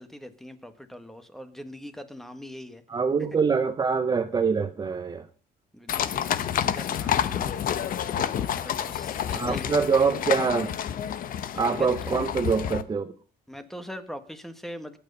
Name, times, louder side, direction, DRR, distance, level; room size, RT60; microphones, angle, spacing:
voice 1, 0.0-2.8 5.7-9.8 11.7-12.3 13.5-15.0, equal, ahead, 1.6 m, -42 dB
voice 2, 2.9-5.3 9.3-10.7 11.5-13.1, right 5 dB, 25° right, 0.9 m, -24 dB
sound 1, 5.9-12.8, left 9 dB, 60° left, 1.1 m, -29 dB
22.0 x 9.2 x 5.5 m
cardioid pair, 140°, 17 cm